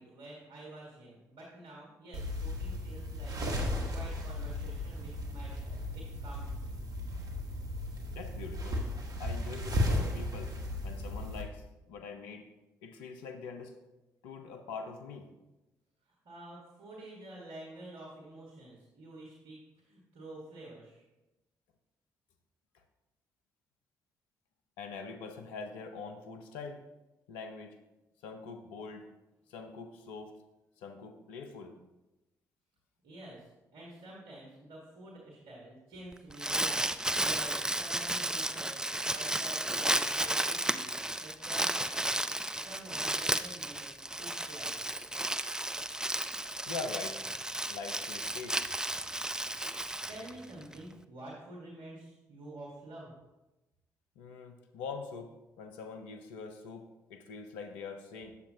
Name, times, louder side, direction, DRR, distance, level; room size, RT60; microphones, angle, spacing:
voice 1, 0.0-6.7 16.2-21.0 33.0-40.9 41.2-42.2 42.5-43.9 44.2-44.9 49.7-53.1, right 1 dB, 65° right, -3 dB, 1.5 m, -49 dB
sound 1, 2.1-11.4, left 1 dB, 45° right, 1.5 m, -35 dB
voice 2, 8.1-8.8 9.2-10.5 10.8-12.5 12.8-13.7 14.2-15.3 24.8-26.8 27.3-27.8 28.2-29.1 29.5-30.3 30.8-31.8 46.7-47.2 47.7-48.6 54.2-58.3, left 4 dB, 75° left, 6 dB, 0.6 m, -43 dB
Crumpling crinkling, 36.1-50.7, right 1 dB, 10° right, 0.4 m, -33 dB
8.2 x 7.0 x 2.7 m, 1.0 s
hypercardioid pair, 40°, 9 cm